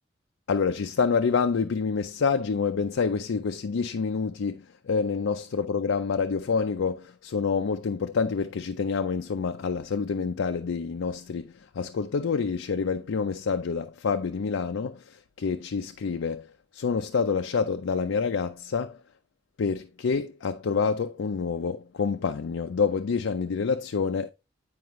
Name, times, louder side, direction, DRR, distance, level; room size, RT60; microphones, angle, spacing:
voice 1, 0.5-19.0 19.6-24.3, left 5 dB, 90° left, 0.5 m, -27 dB
9.4 x 4.7 x 3.1 m
head